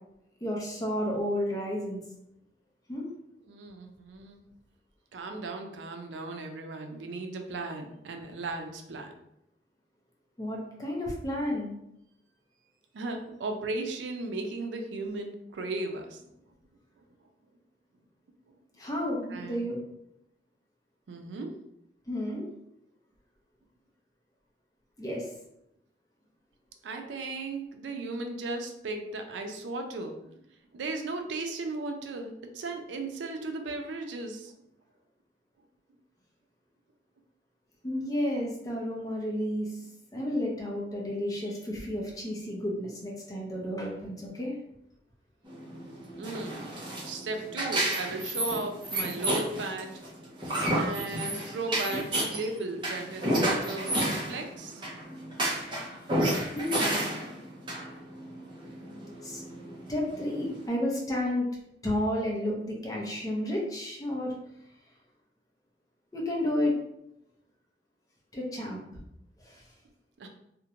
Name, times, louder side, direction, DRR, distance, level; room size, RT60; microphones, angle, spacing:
voice 1, 0.4-2.0 2.9-3.1 10.4-11.7 18.8-19.8 22.1-22.5 25.0-25.3 37.8-39.8 40.1-44.6 55.5-56.1 56.5-56.8 59.2-59.4 59.9-61.5 61.8-64.3 66.1-66.7 68.3-68.8 69.4-69.6, left 1 dB, 20° left, -2 dB, 0.5 m, -31 dB
voice 2, 3.5-4.4 5.1-9.1 12.9-16.2 18.5-18.6 19.3-19.7 21.1-21.5 26.8-30.2 30.7-34.5 46.2-46.8 47.0-49.9 50.7-54.8 70.2-70.3, right 2 dB, 85° right, 4 dB, 0.4 m, -36 dB
sound 1, 45.5-60.6, right 1 dB, 25° right, 0.6 m, -31 dB
2.5 x 2.1 x 2.8 m, 0.81 s
head